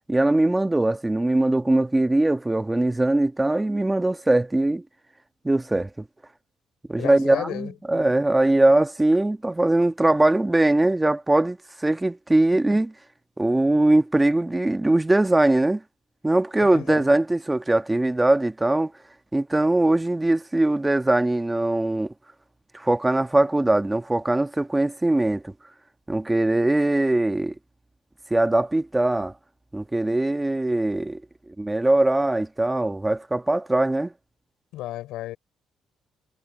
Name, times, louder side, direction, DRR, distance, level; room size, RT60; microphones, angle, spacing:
voice 1, 0.0-4.8 5.4-6.0 6.9-12.9 13.4-15.8 16.2-18.9 19.3-22.1 22.7-25.5 26.1-27.5 28.3-29.3 29.7-31.2 31.5-34.1, right 2 dB, 15° right, 1.4 m, -21 dB
voice 2, 7.0-8.1 16.6-17.0 34.7-35.4, left 15 dB, 90° left, 5.2 m, -34 dB
cardioid pair, 85°, 0 cm